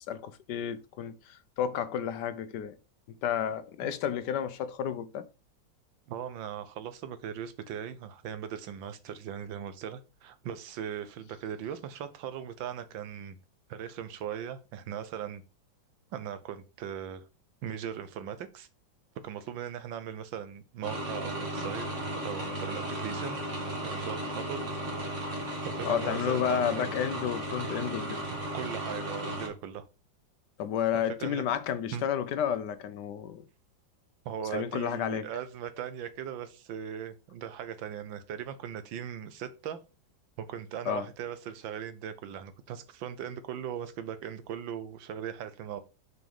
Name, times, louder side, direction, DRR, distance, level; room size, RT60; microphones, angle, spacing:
voice 1, 0.0-2.7 3.2-5.2 25.8-28.2 30.6-33.5 34.5-35.2 40.9-41.1, left 9 dB, 70° left, 1.2 m, -31 dB
voice 2, 6.1-13.4 13.7-15.4 16.1-17.3 17.6-18.7 19.2-21.9 22.1-23.4 23.8-24.6 25.6-26.9 28.5-29.8 31.2-31.4 31.9-32.0 34.2-39.8 40.4-45.8, right 9 dB, 85° right, 1.6 m, -39 dB
sound 1, 20.8-29.5, right 1 dB, 40° right, 1.9 m, -35 dB
6.2 x 4.8 x 5.2 m
omnidirectional pair, 2.0 m